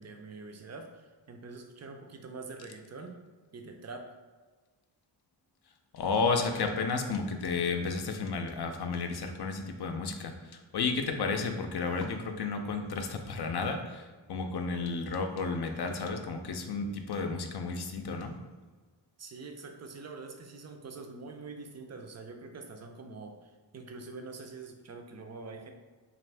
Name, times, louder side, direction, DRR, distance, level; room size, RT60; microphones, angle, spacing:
voice 1, 0.0-3.2 3.5-4.1 19.2-25.7, right 3 dB, 35° right, 5 dB, 0.5 m, -45 dB
voice 2, 5.9-18.3, left 4 dB, 60° left, 5 dB, 0.5 m, -32 dB
2.6 x 2.5 x 3.3 m, 1.4 s
cardioid pair, 50°, 46 cm